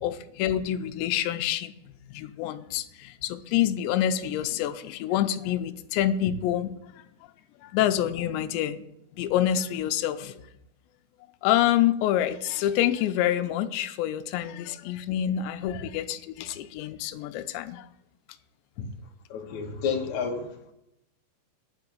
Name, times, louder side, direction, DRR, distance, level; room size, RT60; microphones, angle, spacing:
voice 1, 0.0-1.7 2.1-6.7 7.6-8.8 9.2-10.4 11.4-17.9, left 11 dB, 90° left, 9 dB, 2.9 m, -27 dB
voice 2, 19.3-20.5, left 6 dB, 65° left, 0 dB, 1.9 m, -30 dB
9.9 x 5.9 x 8.0 m, 0.82 s
omnidirectional pair, 5.0 m